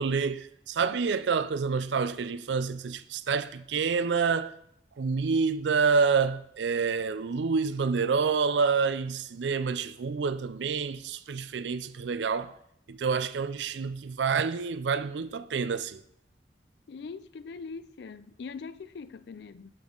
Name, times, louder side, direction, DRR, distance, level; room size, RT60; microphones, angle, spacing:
voice 1, 0.0-4.5 5.0-12.5 12.9-16.0, right 5 dB, 90° right, 0.4 m, -28 dB
voice 2, 16.9-19.7, left 5 dB, 70° left, 0.4 m, -42 dB
12.0 x 5.4 x 3.8 m
head